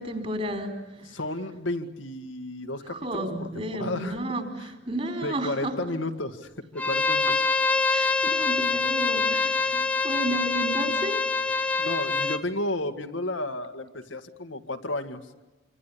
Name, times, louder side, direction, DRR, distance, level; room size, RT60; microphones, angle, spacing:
voice 1, 0.0-1.2 2.9-5.7 7.9-11.9, right 1 dB, 30° right, 6 dB, 4.3 m, -33 dB
voice 2, 1.0-4.2 4.6-4.7 5.2-7.3 11.8-15.2, left 2 dB, 80° left, 5 dB, 2.0 m, -33 dB
Bowed string instrument, 6.8-12.4, left 4 dB, 5° left, 1.1 m, -25 dB
26.0 x 26.0 x 8.5 m, 1.1 s
head